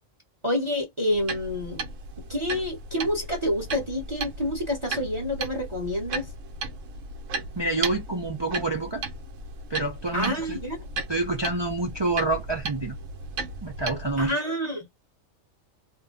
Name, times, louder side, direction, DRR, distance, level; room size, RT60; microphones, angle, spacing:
voice 1, 0.4-1.8 2.3-6.3 10.1-10.8 14.2-14.8, left 1 dB, 25° right, 0.9 m, -28 dB
sound 1, 1.1-14.3, right 3 dB, 70° right, 1.0 m, -36 dB
voice 2, 7.5-9.0 9.7-10.6 11.1-13.0 13.6-14.4, right 2 dB, 45° right, 0.3 m, -28 dB
2.6 x 2.1 x 3.7 m
omnidirectional pair, 1.4 m